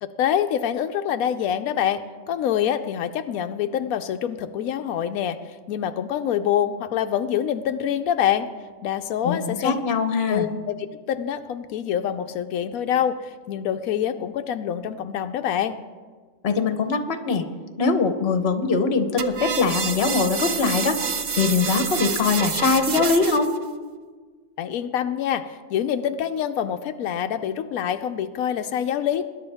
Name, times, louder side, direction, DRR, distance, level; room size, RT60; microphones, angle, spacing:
voice 1, 0.0-5.4 5.7-8.5 8.8-9.8 10.3-15.8 24.6-29.3, left 9 dB, 90° left, 8 dB, 1.0 m, -26 dB
voice 2, 9.2-10.5 16.4-17.4 17.8-21.0 21.3-23.5, left 4 dB, 50° left, 8 dB, 1.2 m, -22 dB
sound 1, 19.2-23.6, right 6 dB, 45° right, 0.6 m, -28 dB
21.0 x 10.5 x 3.4 m, 1.5 s
omnidirectional pair, 1.5 m